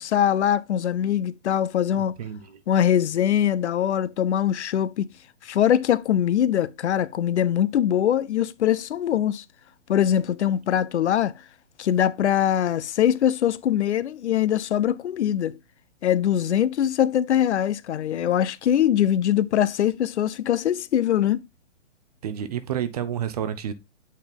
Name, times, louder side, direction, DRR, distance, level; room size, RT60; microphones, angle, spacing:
voice 1, 0.0-2.1 2.7-5.1 5.4-9.4 9.9-11.3 11.8-15.6 16.0-21.4, left 10 dB, 65° left, 0.6 m, -22 dB
voice 2, 2.2-2.6 22.2-23.7, right 9 dB, 30° right, 0.6 m, -29 dB
8.2 x 4.4 x 3.4 m
hypercardioid pair, 150°, 37 cm